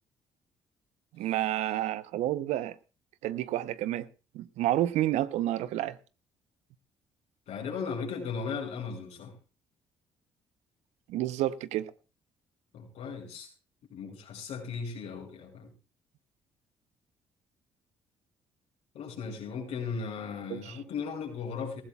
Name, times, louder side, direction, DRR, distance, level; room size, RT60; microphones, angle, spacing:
voice 1, 1.2-2.8 3.2-4.1 4.3-6.0 11.1-11.9 20.5-20.8, right 13 dB, 80° right, 0.7 m, -30 dB
voice 2, 7.5-9.3 12.7-13.5 13.9-15.7 18.9-21.8, left 5 dB, 75° left, 5.5 m, -37 dB
18.5 x 16.0 x 2.3 m
supercardioid pair, 60°, 12 cm